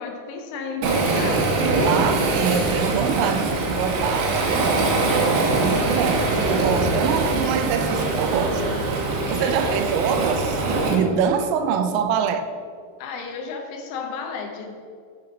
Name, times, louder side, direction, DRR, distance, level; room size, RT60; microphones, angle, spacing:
voice 1, 0.0-1.5 9.2-9.8 13.0-14.8, left 4 dB, 80° left, 3 dB, 3.1 m, -33 dB
Waves surf, 0.8-11.0, right 2 dB, 75° right, 3.0 m, -22 dB
voice 2, 1.8-8.6 9.3-12.5, right 7 dB, 90° right, 9 dB, 3.2 m, -25 dB
7.4 x 7.2 x 5.1 m, 2.2 s
omnidirectional pair, 5.7 m